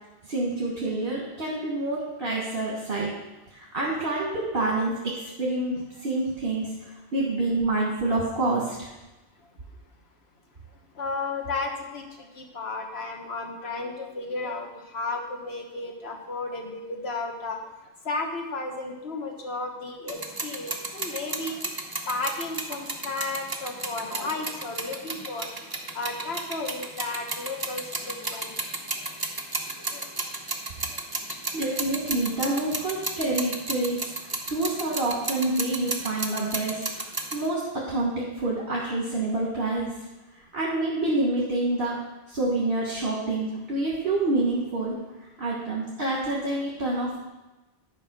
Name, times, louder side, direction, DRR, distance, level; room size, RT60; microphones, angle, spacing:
voice 1, 0.2-3.1 3.5-6.7 7.1-8.9 31.5-37.1 37.3-39.9 40.5-42.0 42.3-45.0 45.4-47.3, right 2 dB, 60° right, -4 dB, 1.7 m, -27 dB
voice 2, 11.0-17.6 18.0-21.7 22.1-25.5 25.9-28.6 29.9-30.0, left 3 dB, 80° left, 2 dB, 1.6 m, -33 dB
sound 1, 20.1-37.5, right 2 dB, 25° right, 0.9 m, -33 dB
11.0 x 4.8 x 6.1 m, 1.1 s
omnidirectional pair, 1.1 m